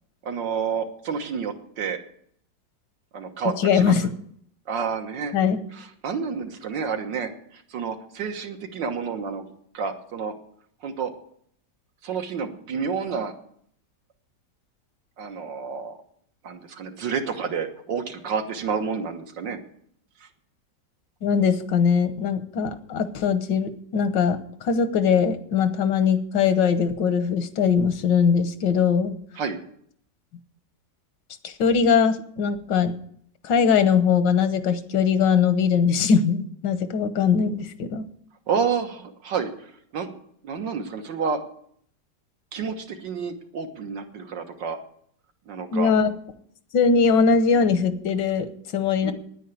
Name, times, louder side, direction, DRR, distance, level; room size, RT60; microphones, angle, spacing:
voice 1, 0.2-2.0 3.1-3.9 4.7-5.4 5.7-9.5 9.7-10.3 10.8-11.1 12.0-13.3 15.2-16.0 16.4-19.6 20.2-20.3 29.4-29.6 38.5-40.2 40.4-41.4 42.5-44.8 45.5-45.9 49.0-49.1, right 6 dB, 85° right, 5 dB, 2.0 m, -29 dB
voice 2, 3.6-4.1 5.3-5.6 21.2-29.1 31.4-32.9 33.4-38.0 45.7-46.1 46.7-48.5 48.7-49.1, left 6 dB, 85° left, 11 dB, 1.7 m, -21 dB
9.9 x 9.3 x 9.1 m, 0.66 s
omnidirectional pair, 1.9 m